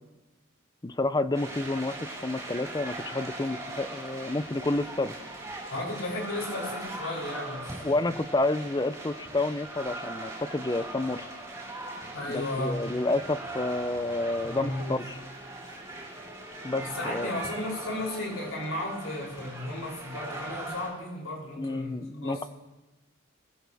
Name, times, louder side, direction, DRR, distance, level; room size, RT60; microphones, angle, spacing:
voice 1, 0.8-5.1 7.8-11.3 12.3-15.2 16.6-17.3 21.6-22.4, left 2 dB, 20° left, 13 dB, 0.6 m, -29 dB
sound 1, 1.3-20.9, right 2 dB, 15° right, 6.1 m, -40 dB
voice 2, 5.7-8.1 12.1-12.8 14.5-14.9 16.8-22.5, left 1 dB, 85° left, -3 dB, 7.3 m, -34 dB
25.5 x 15.5 x 3.5 m, 1.1 s
head